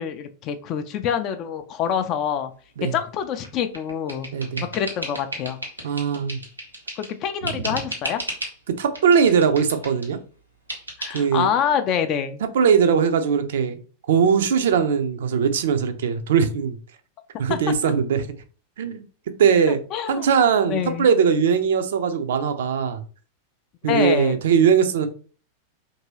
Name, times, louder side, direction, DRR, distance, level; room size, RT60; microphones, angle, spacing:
voice 1, 0.0-2.5 2.9-4.3 4.7-5.6 7.0-8.2 11.0-12.4 17.5-17.7 19.9-20.3 20.7-21.1 23.9-24.4, left 8 dB, 35° left, 0.3 m, -26 dB
sound 1, 3.4-7.2 7.5-8.6 8.9-10.1 10.7-11.2, right 1 dB, 85° right, 0.9 m, -34 dB
voice 2, 4.3-4.6 5.8-6.4 7.4-7.8 8.7-10.2 11.1-11.5 12.5-13.8 14.1-16.7 17.4-18.3 18.8-19.0 19.4-19.8 20.1-23.0 23.8-25.1, right 6 dB, 60° right, 0.4 m, -20 dB
2.9 x 2.7 x 3.0 m
figure-of-eight pair, 90°, 0 cm